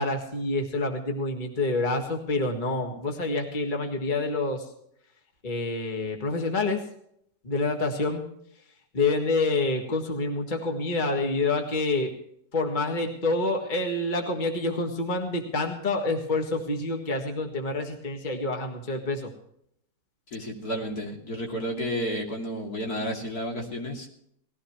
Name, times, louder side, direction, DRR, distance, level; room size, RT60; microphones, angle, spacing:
voice 1, 0.0-4.7 5.4-6.8 7.4-8.2 8.9-12.1 12.5-19.3, left 2 dB, 30° left, 3 dB, 1.9 m, -27 dB
voice 2, 20.3-24.1, equal, 65° left, 0 dB, 3.3 m, -31 dB
19.5 x 15.5 x 3.1 m, 0.71 s
omnidirectional pair, 1.8 m